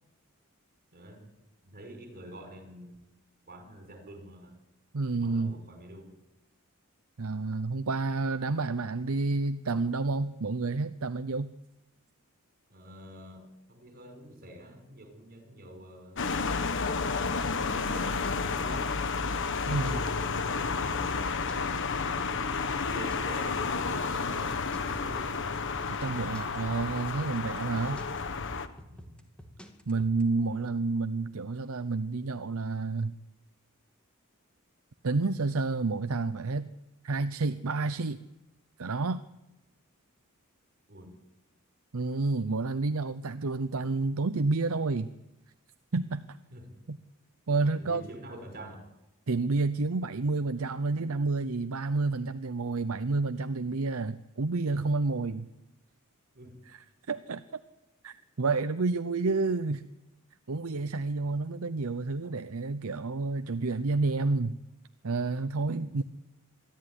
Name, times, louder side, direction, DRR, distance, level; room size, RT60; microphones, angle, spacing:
voice 1, 0.9-1.3 1.6-3.0 3.5-4.6 5.1-6.2 12.7-16.3 17.0-19.1 20.5-22.3 22.9-25.3 28.9-29.2 30.5-30.7 40.9-41.2 42.5-42.7 46.5-46.7 47.8-48.9 56.3-56.6 61.2-61.3, right 1 dB, 45° right, 6 dB, 5.3 m, -47 dB
voice 2, 4.9-5.6 7.2-11.5 19.7-20.1 26.0-28.0 29.9-33.1 35.0-36.7 37.0-38.2 38.8-39.3 41.9-45.1 45.9-46.3 46.9-47.0 47.5-48.1 49.3-55.5 56.7-57.6 58.0-59.8 60.5-64.6 65.0-66.0, right 3 dB, 70° right, 11 dB, 0.7 m, -30 dB
sound 1, 16.2-28.7, left 4 dB, 60° left, 1.3 m, -31 dB
sound 2, 18.2-30.2, equal, 5° left, 2.2 m, -49 dB
23.5 x 14.0 x 9.8 m, 0.95 s
head